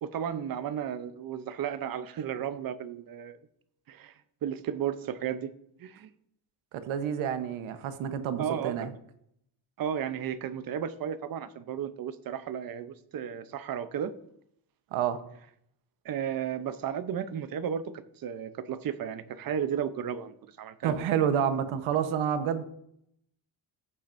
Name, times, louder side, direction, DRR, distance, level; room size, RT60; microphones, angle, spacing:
voice 1, 0.0-3.4 3.9-5.5 5.8-6.1 8.4-8.9 9.8-14.1 16.0-21.0, right 8 dB, 45° right, 13 dB, 0.8 m, -34 dB
voice 2, 6.7-8.9 14.9-15.2 20.8-22.6, right 8 dB, 85° right, 10 dB, 1.1 m, -29 dB
14.5 x 7.4 x 2.6 m, 0.72 s
cardioid pair, 135°, 47 cm